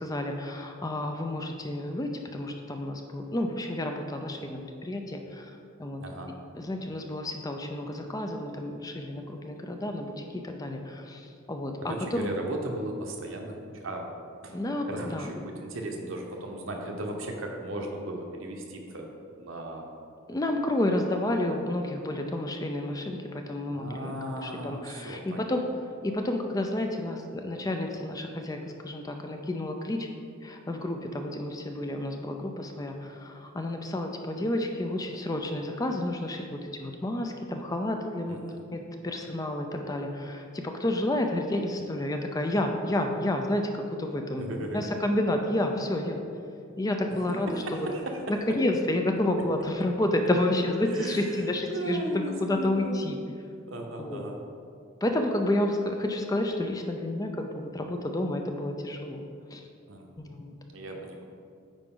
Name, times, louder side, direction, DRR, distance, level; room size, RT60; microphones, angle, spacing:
voice 1, 0.0-6.0 6.5-12.3 14.5-14.8 15.1-15.3 20.3-24.1 24.4-25.6 26.0-30.1 30.4-38.4 38.7-46.2 46.8-47.9 48.5-53.2 54.0-54.3 55.0-59.2 59.5-59.7 60.3-60.5, left 1 dB, 15° left, 4 dB, 0.4 m, -30 dB
voice 2, 6.0-6.3 11.8-14.1 14.4-14.6 14.9-19.1 19.4-19.9 23.7-25.5 38.3-38.6 44.4-44.9 47.3-48.4 50.9-53.1 53.7-54.4 59.9-60.1 60.7-61.2, right 1 dB, 65° right, 2 dB, 0.9 m, -36 dB
9.0 x 4.7 x 3.8 m, 2.4 s
head